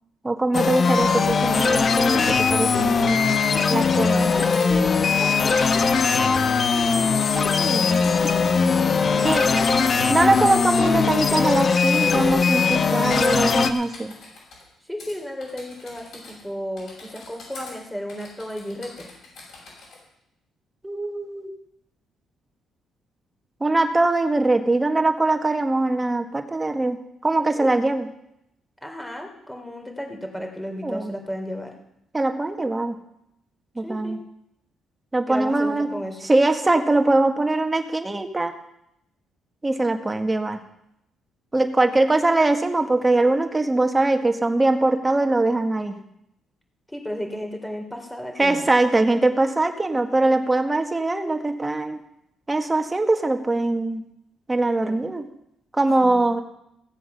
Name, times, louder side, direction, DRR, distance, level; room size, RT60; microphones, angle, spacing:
voice 1, 0.2-3.2 3.7-4.3 6.7-8.1 9.2-9.5 10.1-14.1 20.8-21.5 23.6-27.0 27.2-28.1 30.8-31.1 32.1-33.0 33.8-34.2 35.1-35.9 36.3-38.5 39.6-40.6 41.5-46.0 48.4-52.0 52.5-54.0 54.5-55.2 55.7-56.4, right 2 dB, 20° right, 6 dB, 1.7 m, -22 dB
sound 1, 0.5-13.7, left 5 dB, 45° left, 1.1 m, -20 dB
Typing, 2.4-4.7 5.2-6.2 6.5-8.4 9.7-10.7 11.2-12.8 13.1-14.6 15.0-15.1 15.4-16.5 16.8-17.7 18.1-20.0, left 3 dB, 70° left, 7.0 m, -44 dB
voice 2, 3.9-5.6 9.1-10.1 14.8-19.1 27.6-27.8 28.8-31.7 33.8-34.2 35.3-36.2 46.9-48.7 54.8-55.0 56.0-56.2, equal, 10° left, 3 dB, 3.6 m, -34 dB
16.5 x 7.8 x 6.9 m, 0.80 s
cardioid pair, 90°, 0 cm